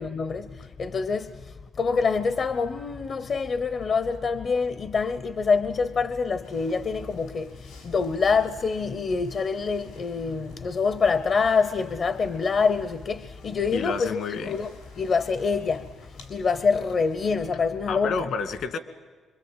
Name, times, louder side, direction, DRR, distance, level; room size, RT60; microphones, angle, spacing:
voice 1, 0.0-18.3, left 5 dB, 50° left, 0.9 m, -26 dB
sound 1, 6.4-17.3, left 3 dB, 90° left, 6.4 m, -52 dB
voice 2, 13.7-14.6 17.9-18.8, left 5 dB, 70° left, 2.2 m, -30 dB
26.0 x 23.5 x 9.0 m
cardioid pair, 90°, 0 cm